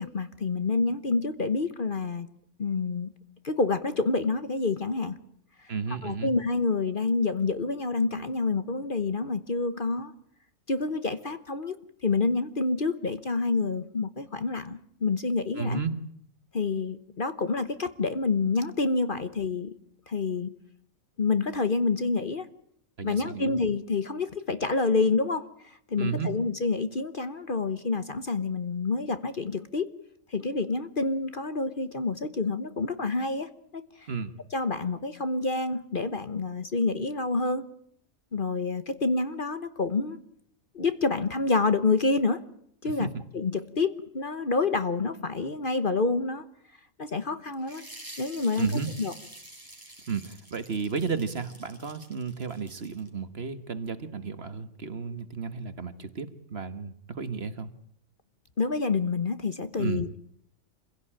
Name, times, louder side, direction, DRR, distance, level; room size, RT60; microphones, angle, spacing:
voice 1, 0.0-2.3 2.6-3.1 3.4-5.2 6.0-10.1 10.7-11.8 12.0-15.8 16.5-19.7 20.1-20.5 21.2-22.5 23.0-29.9 30.3-34.1 34.5-37.6 38.3-40.2 40.7-42.4 42.8-43.1 43.3-46.4 47.0-47.8 48.2-48.7 49.0-49.1 58.6-60.2, left 3 dB, 40° left, 11 dB, 1.1 m, -28 dB
voice 2, 5.7-6.3 15.6-16.0 23.0-23.6 26.0-26.3 34.1-34.3 42.8-43.1 48.6-48.9 50.1-57.7 59.8-60.0, right 5 dB, 50° right, 11 dB, 1.6 m, -33 dB
sound 1, 47.6-53.1, right 1 dB, 15° right, 4.3 m, -48 dB
26.0 x 16.5 x 8.8 m, 0.70 s
omnidirectional pair, 1.4 m